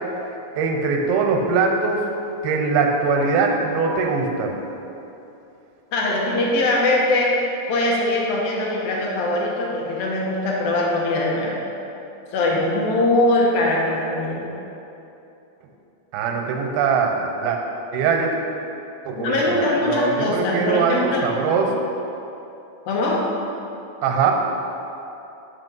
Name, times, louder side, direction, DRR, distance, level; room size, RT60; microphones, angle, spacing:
voice 1, 0.6-2.0 2.4-4.6 16.1-17.6 17.9-18.3 19.0-21.7 24.0-24.3, right 5 dB, 90° right, 2 dB, 2.7 m, -21 dB
voice 2, 5.9-7.3 7.7-11.6 12.3-14.5 19.2-21.2 22.9-23.2, left 2 dB, 75° left, -2 dB, 2.7 m, -21 dB
6.2 x 6.0 x 5.4 m, 2.9 s
omnidirectional pair, 4.3 m